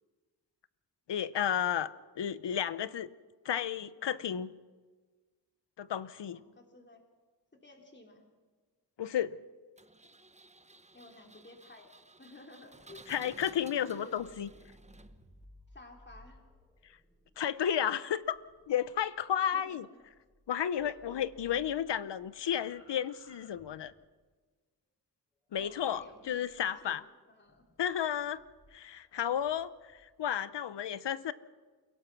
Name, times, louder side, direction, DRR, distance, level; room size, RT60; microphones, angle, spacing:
voice 1, 1.1-3.1 3.4-4.5 5.8-6.4 9.0-9.4 13.1-14.5 17.4-18.4 18.7-19.9 20.5-23.9 25.5-27.0 27.8-28.4 28.7-31.3, left 9 dB, 80° left, 16 dB, 0.9 m, -32 dB
voice 2, 6.3-7.0 7.6-8.2 10.9-13.3 13.9-14.2 15.7-16.4 19.4-20.0 20.8-21.2 25.6-27.7, left 2 dB, 25° left, 2 dB, 3.4 m, -54 dB
Engine, 9.8-15.4, right 2 dB, 15° right, 1.2 m, -56 dB
sound 1, 14.1-20.5 20.7-24.1 25.5-26.8 27.5-30.1, equal, 5° left, 6.3 m, -62 dB
29.0 x 17.5 x 6.2 m, 1.4 s
cardioid pair, 75°, 42 cm